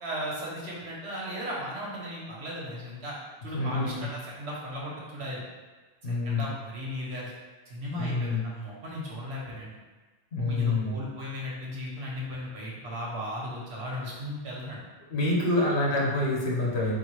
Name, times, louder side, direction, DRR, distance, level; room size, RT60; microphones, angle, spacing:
voice 1, 0.0-3.1 3.4-5.4 6.1-7.3 7.7-9.8 10.4-14.8 15.5-15.6, equal, 90° right, -4 dB, 1.3 m, -36 dB
voice 2, 3.5-4.0 6.0-6.5 7.9-8.5 10.3-11.0 15.1-16.9, left 2 dB, 90° left, -3 dB, 1.1 m, -27 dB
3.8 x 2.4 x 4.6 m, 1.3 s
omnidirectional pair, 1.1 m